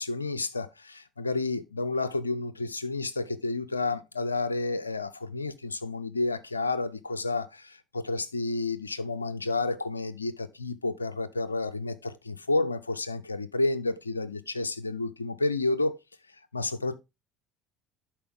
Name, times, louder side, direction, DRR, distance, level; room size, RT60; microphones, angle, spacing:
voice 1, 0.0-16.0 16.5-17.0, left 3 dB, 85° left, 0.5 m, -30 dB
11.0 x 4.4 x 3.5 m
figure-of-eight pair, 60°, 0 cm